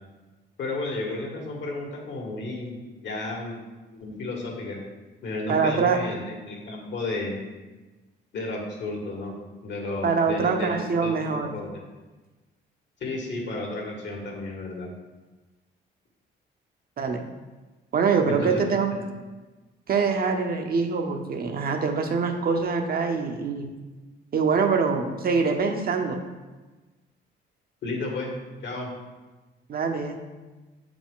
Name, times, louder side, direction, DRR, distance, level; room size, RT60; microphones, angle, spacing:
voice 1, 0.6-3.6 3.9-4.8 5.2-7.4 8.3-9.3 9.6-11.8 13.0-14.9 18.3-18.6 27.8-28.3 28.6-28.9, left 2 dB, 65° left, 0 dB, 1.7 m, -32 dB
voice 2, 5.5-6.0 10.0-11.5 17.0-17.2 17.9-18.9 19.9-23.7 24.3-26.2 29.7-30.2, right 5 dB, 50° right, 4 dB, 0.8 m, -24 dB
6.8 x 4.9 x 3.7 m, 1.2 s
cardioid pair, 90°, 20 cm